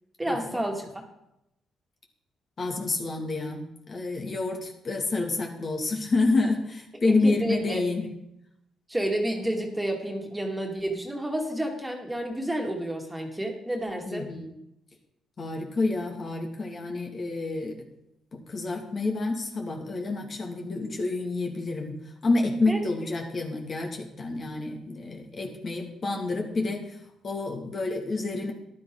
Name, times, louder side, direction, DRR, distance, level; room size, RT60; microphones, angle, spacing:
voice 1, 0.2-0.9 7.0-7.8 8.9-14.3 22.7-22.8, right 1 dB, 10° right, 1 dB, 2.4 m, -30 dB
voice 2, 2.6-8.1 14.0-14.5 15.4-17.8 18.3-22.0 22.2-27.0 27.2-28.5, left 3 dB, 45° left, 2 dB, 2.3 m, -28 dB
14.5 x 11.0 x 3.9 m, 0.83 s
cardioid pair, 90°, 0 cm